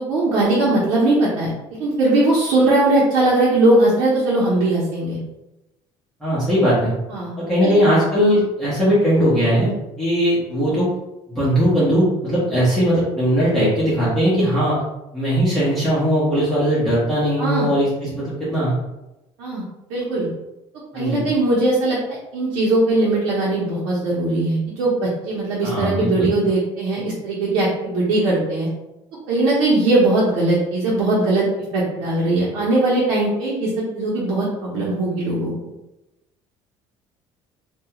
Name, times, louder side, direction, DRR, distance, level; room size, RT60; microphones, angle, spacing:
voice 1, 0.0-1.5 1.8-5.2 7.1-7.3 17.4-17.7 19.4-19.6 19.9-20.3 20.9-28.7 29.3-31.5 31.7-35.5, right 2 dB, 90° right, -6 dB, 0.8 m, -19 dB
voice 2, 6.2-6.9 7.4-9.7 10.0-10.9 11.3-14.8 15.1-18.7 20.9-21.3 25.6-26.4, equal, 5° left, -12 dB, 1.0 m, -19 dB
2.3 x 2.3 x 2.9 m, 0.96 s
cardioid pair, 150°, 10 cm